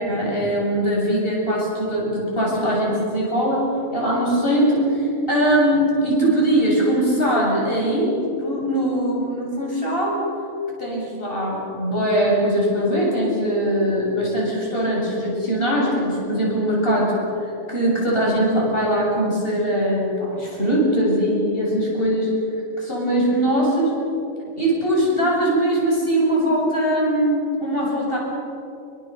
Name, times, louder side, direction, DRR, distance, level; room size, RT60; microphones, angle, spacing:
voice 1, 0.0-10.2 10.8-17.2 17.7-22.3 22.8-23.9 24.6-28.2, right 1 dB, 50° left, -4 dB, 8.1 m, -21 dB
29.5 x 25.0 x 5.5 m, 2.8 s
omnidirectional pair, 1.3 m